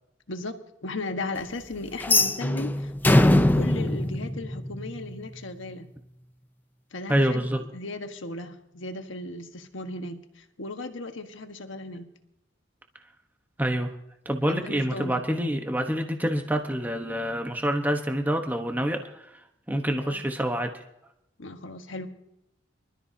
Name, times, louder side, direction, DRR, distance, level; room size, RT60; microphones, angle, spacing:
voice 1, 0.8-5.9 6.9-12.1 14.5-15.2 20.0-20.2 21.4-22.1, left 2 dB, 80° left, 6 dB, 1.5 m, -36 dB
sound 1, 2.0-5.1, left 1 dB, 10° left, 0.6 m, -22 dB
voice 2, 7.1-7.6 13.6-13.9 14.2-19.2 19.7-20.7, equal, 10° right, 4 dB, 1.1 m, -26 dB
25.5 x 13.0 x 2.8 m, 0.81 s
head